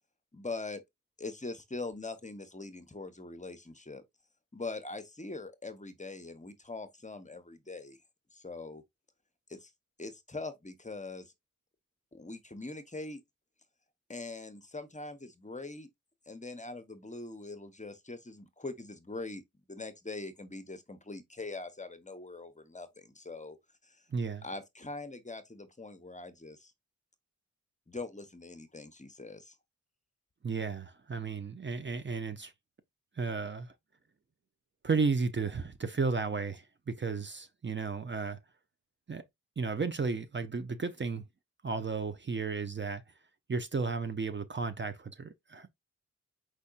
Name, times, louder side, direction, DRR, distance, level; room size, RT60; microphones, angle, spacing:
voice 1, 0.3-0.8 1.2-4.0 4.5-8.0 8.3-8.8 9.5-9.7 10.0-11.3 12.1-13.2 14.1-15.9 16.3-19.4 19.7-23.6 23.8-24.1 24.4-26.7 27.9-29.6, left 3 dB, 25° left, 0.9 m, -42 dB
voice 2, 24.1-24.4 30.4-32.5 33.2-33.7 34.8-38.4 39.1-39.2 39.6-41.2 41.6-43.0 43.5-45.7, right 4 dB, 35° right, 0.6 m, -33 dB
4.6 x 4.2 x 2.4 m
cardioid pair, 60°, 31 cm